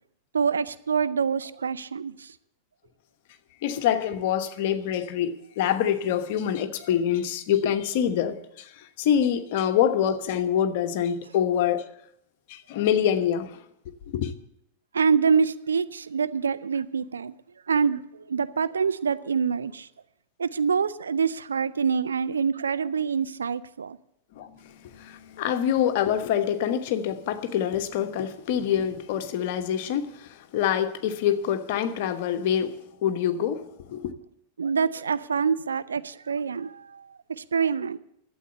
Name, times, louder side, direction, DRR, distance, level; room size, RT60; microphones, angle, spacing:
voice 1, 0.3-2.3 14.9-17.3 17.7-19.9 20.4-24.0 34.6-37.1 37.4-38.0, right 6 dB, 70° right, 0.5 m, -26 dB
voice 2, 3.6-11.9 12.5-13.6 14.1-14.3 24.3-34.1, left 9 dB, 50° left, 1.1 m, -26 dB
12.5 x 8.1 x 8.3 m
figure-of-eight pair, 90°, 0 cm